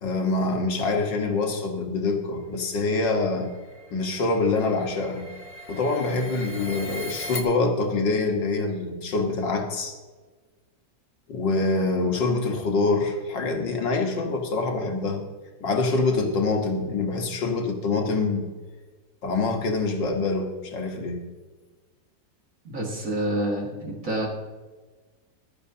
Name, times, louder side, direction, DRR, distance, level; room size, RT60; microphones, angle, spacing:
voice 1, 0.0-3.5 3.9-5.3 5.7-9.9 11.3-15.2 15.6-18.5 19.2-21.2, left 3 dB, 75° left, 2 dB, 2.1 m, -25 dB
sound 1, 2.7-7.4, left 1 dB, 25° left, 0.7 m, -39 dB
voice 2, 22.6-24.3, right 1 dB, 45° right, -1 dB, 2.3 m, -28 dB
14.5 x 12.0 x 2.8 m, 1.3 s
omnidirectional pair, 2.0 m